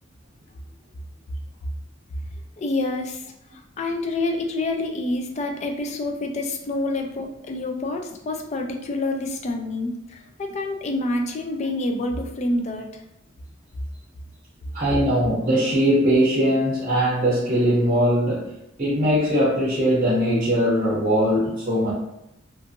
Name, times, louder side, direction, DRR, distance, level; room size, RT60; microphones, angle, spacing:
voice 1, 2.6-13.0, left 2 dB, 35° left, 3 dB, 0.3 m, -27 dB
voice 2, 14.7-18.5 18.8-21.9, equal, 35° right, -7 dB, 0.7 m, -20 dB
2.5 x 2.5 x 2.5 m, 0.86 s
head